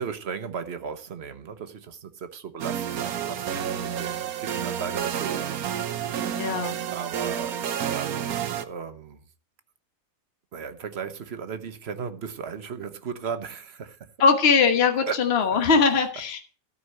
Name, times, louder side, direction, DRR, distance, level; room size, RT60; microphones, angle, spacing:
voice 1, 0.0-5.7 6.9-9.2 10.5-14.0 15.1-15.2, right 6 dB, 50° right, 1.2 m, -36 dB
sound 1, 2.6-8.6, right 9 dB, 90° right, 1.3 m, -30 dB
voice 2, 6.4-6.8 14.2-16.4, left 5 dB, 45° left, 1.5 m, -21 dB
13.0 x 5.5 x 7.7 m
omnidirectional pair, 1.5 m